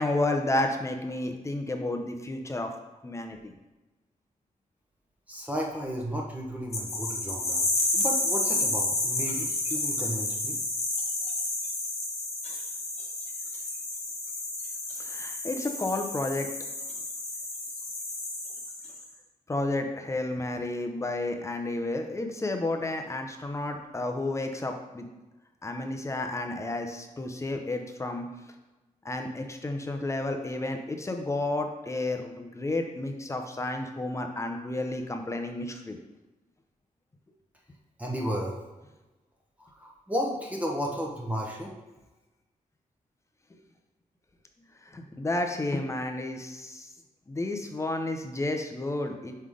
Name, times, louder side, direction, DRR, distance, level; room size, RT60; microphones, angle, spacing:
voice 1, 0.0-2.7 3.0-3.5 15.0-16.5 19.5-25.1 25.6-28.3 29.0-36.0 44.9-46.9 47.3-49.3, left 2 dB, 20° left, 4 dB, 0.7 m, -31 dB
voice 2, 5.3-10.6 38.0-38.6 39.6-41.7, equal, 10° right, -2 dB, 0.9 m, -33 dB
sound 1, 6.7-19.0, left 2 dB, 50° left, 1.1 m, -31 dB
5.4 x 3.9 x 4.8 m, 1.1 s
wide cardioid pair, 125°, 14 cm